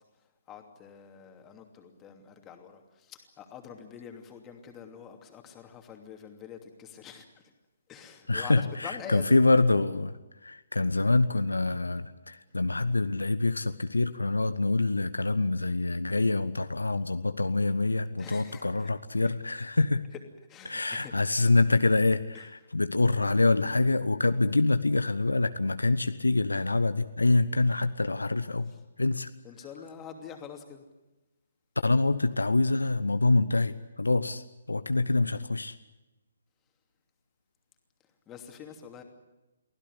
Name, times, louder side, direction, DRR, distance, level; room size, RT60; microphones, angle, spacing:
voice 1, 0.5-7.4 7.9-9.4 18.2-18.9 20.5-21.1 22.3-22.5 29.4-30.8 38.3-39.0, left 7 dB, 15° left, 4 dB, 2.8 m, -45 dB
voice 2, 8.3-10.1 10.4-20.1 20.7-28.7 29.0-29.3 31.8-35.8, left 2 dB, 75° left, 11 dB, 1.0 m, -26 dB
23.5 x 16.5 x 10.0 m, 1.0 s
figure-of-eight pair, 135°, 0 cm